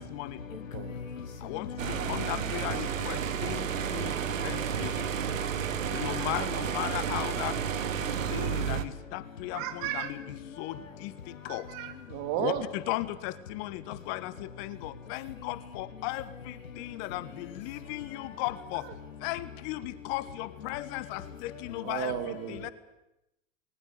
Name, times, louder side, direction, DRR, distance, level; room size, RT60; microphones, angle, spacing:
voice 1, 0.4-2.4 3.2-4.8 5.4-6.1 8.0-8.7 10.5-11.0 11.2-11.5 12.1-12.2 14.9-15.0 15.4-15.5 16.6-17.0 17.5-18.4 20.7-21.9, left 6 dB, 85° left, 1.4 m, -43 dB
sound 1, 1.8-8.8, right 8 dB, 85° right, 1.7 m, -31 dB
voice 2, 2.1-3.6 3.9-4.1 4.4-4.9 5.9-7.5 8.3-8.8 9.1-9.6 9.9-10.2 10.6-10.7 11.5-11.6 12.4-14.3 14.6-16.2 16.8-17.2 17.6-18.8 19.2-22.1 22.6-22.7, left 17 dB, 55° left, 1.6 m, -35 dB
voice 3, 9.5-10.1 11.4-12.6 18.8-18.9 21.8-22.7, right 12 dB, 55° right, 3.2 m, -35 dB
20.5 x 19.5 x 8.9 m
hypercardioid pair, 85°, 38 cm